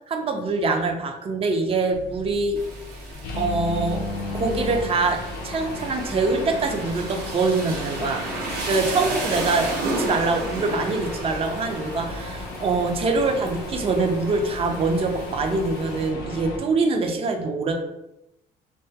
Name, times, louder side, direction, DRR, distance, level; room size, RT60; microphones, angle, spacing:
voice 1, 0.1-2.6 3.3-4.1 4.3-8.2 8.7-17.7, right 3 dB, 35° right, 4 dB, 0.4 m, -24 dB
sound 1, 1.9-16.6, left 2 dB, 65° left, 0.5 m, -34 dB
Rain, 2.6-16.1, right 2 dB, 75° right, 0.8 m, -34 dB
2.2 x 2.1 x 2.7 m, 0.87 s
cardioid pair, 110°, 17 cm